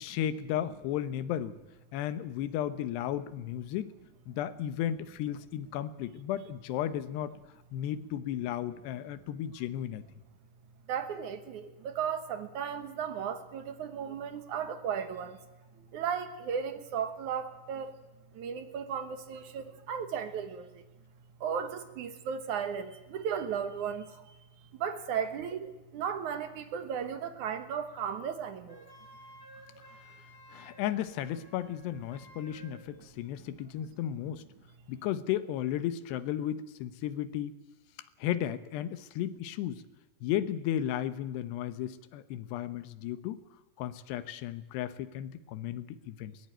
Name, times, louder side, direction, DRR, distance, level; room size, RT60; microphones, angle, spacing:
voice 1, 0.0-1.6 1.9-3.9 4.3-7.3 7.7-10.0 30.5-34.4 34.9-37.5 38.2-39.8 40.2-43.4 43.8-46.4, left 11 dB, 85° left, 13 dB, 3.2 m, -34 dB
voice 2, 10.9-15.4 15.8-17.9 18.3-20.8 21.4-24.4 24.7-28.8 29.8-29.9, right 7 dB, 60° right, 10 dB, 2.3 m, -35 dB
Wind instrument woodwind instrument, 28.7-32.9, equal, 25° left, 3.1 m, -54 dB
22.0 x 18.0 x 9.1 m, 1.1 s
omnidirectional pair, 4.7 m